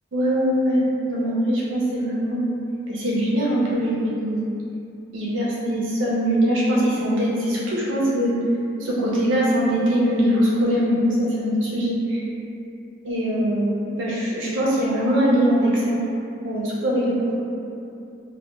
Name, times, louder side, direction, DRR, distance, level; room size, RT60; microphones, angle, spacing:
voice 1, 0.1-0.8 1.1-2.5 2.9-4.4 5.1-8.3 8.8-12.2 13.0-16.0 16.4-17.3, equal, 80° right, -7 dB, 0.5 m, -22 dB
2.1 x 2.0 x 3.1 m, 2.7 s
head